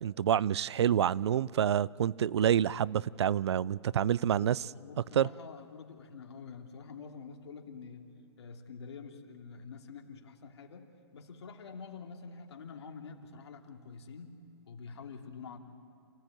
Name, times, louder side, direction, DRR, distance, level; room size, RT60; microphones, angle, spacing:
voice 1, 0.0-4.6 5.2-5.3, right 9 dB, 75° right, 0.5 m, -27 dB
voice 2, 4.3-8.1 8.4-15.6, left 5 dB, 75° left, 2.8 m, -47 dB
28.0 x 16.5 x 9.1 m
hypercardioid pair, 145°, 14 cm